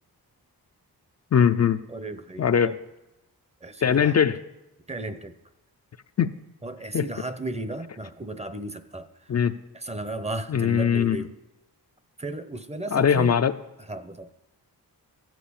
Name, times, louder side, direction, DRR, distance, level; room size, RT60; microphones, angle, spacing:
voice 1, 1.3-1.8 2.4-2.7 3.8-4.4 6.2-6.3 6.9-7.0 9.3-9.5 10.5-11.2 12.9-13.5, left 7 dB, 45° left, 9 dB, 0.5 m, -20 dB
voice 2, 1.9-2.8 3.6-4.2 4.9-5.4 6.6-9.1 9.7-11.3 12.2-13.4 13.9-14.3, right 2 dB, 15° right, 12 dB, 0.7 m, -35 dB
14.5 x 7.5 x 7.0 m, 0.96 s
wide cardioid pair, 115°, 38 cm